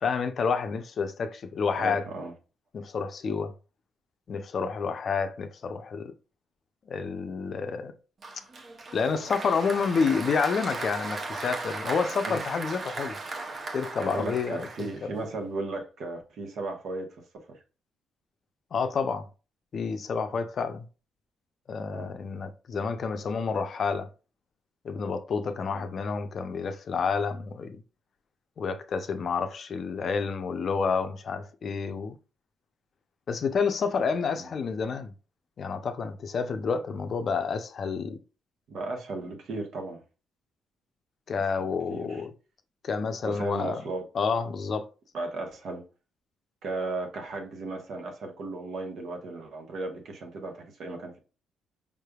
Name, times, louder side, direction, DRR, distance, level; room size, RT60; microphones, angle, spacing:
voice 1, 0.0-2.1 2.7-3.5 4.3-6.1 6.9-7.9 8.9-13.2 13.7-15.2 18.7-19.3 19.7-20.8 21.7-24.1 24.8-27.8 28.6-32.2 33.3-35.1 35.6-38.2 41.3-42.3 42.8-43.8 44.1-44.9, left 5 dB, 50° left, 0.5 m, -29 dB
voice 2, 1.8-2.3 12.2-12.4 14.0-17.6 21.9-22.1 25.7-25.8 34.4-34.5 38.7-40.0 41.6-42.2 43.2-44.0 45.1-45.8 46.6-51.2, right 2 dB, 70° right, 1.0 m, -35 dB
Applause, 8.2-15.3, right 3 dB, 40° right, 0.7 m, -37 dB
5.1 x 3.3 x 2.3 m
cardioid pair, 90°, 0 cm